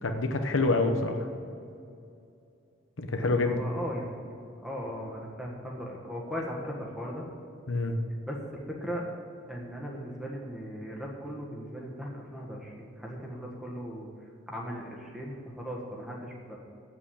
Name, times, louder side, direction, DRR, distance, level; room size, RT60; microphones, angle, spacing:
voice 1, 0.0-1.2 3.0-3.6 7.7-8.0, left 2 dB, 85° left, 5 dB, 1.0 m, -26 dB
voice 2, 3.4-4.3 4.6-7.2 8.3-9.0 9.5-14.1 14.5-16.6, equal, 5° right, -2 dB, 1.6 m, -38 dB
8.4 x 7.7 x 8.6 m, 2.5 s
head